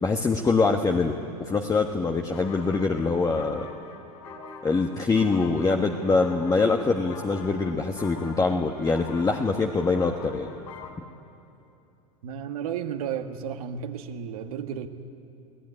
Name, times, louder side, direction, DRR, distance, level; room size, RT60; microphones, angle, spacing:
voice 1, 0.0-3.7 4.6-10.5, left 4 dB, 20° left, 3 dB, 1.4 m, -24 dB
sound 1, 2.3-10.9, left 4 dB, 80° left, 3.5 m, -43 dB
voice 2, 12.2-14.9, right 8 dB, 75° right, 5 dB, 1.7 m, -33 dB
23.5 x 17.0 x 10.0 m, 2.8 s
hypercardioid pair, 100°, 19 cm